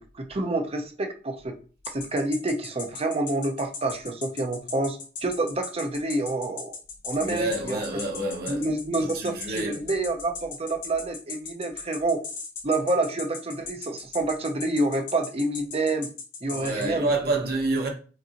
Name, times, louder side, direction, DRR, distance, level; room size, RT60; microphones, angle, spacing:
voice 1, 0.0-1.5 1.9-6.8 7.0-7.8 8.5-12.2 12.6-16.1 16.4-17.1, right 2 dB, 35° right, 0.6 m, -28 dB
sound 1, 1.8-16.9, left 5 dB, 80° left, 1.3 m, -37 dB
voice 2, 7.2-8.7 9.0-9.8 16.5-17.9, right 2 dB, 60° right, 1.0 m, -28 dB
5.1 x 2.6 x 2.9 m
head